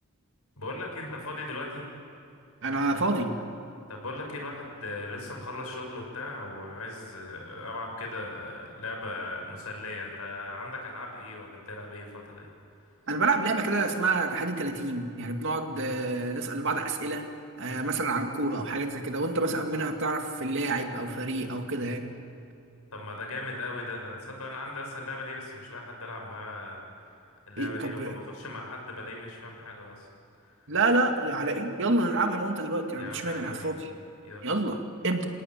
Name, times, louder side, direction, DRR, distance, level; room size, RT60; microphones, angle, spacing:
voice 1, 0.6-2.0 3.9-12.5 22.9-26.8 27.5-30.1 30.4-30.5 33.0-33.8 34.2-34.5, left 2 dB, 85° left, 1 dB, 6.4 m, -38 dB
voice 2, 2.6-3.3 13.1-17.2 17.6-22.1 27.6-28.2 30.7-33.9 34.4-35.3, right 2 dB, 60° right, 4 dB, 2.4 m, -28 dB
27.5 x 18.0 x 9.2 m, 2.7 s
head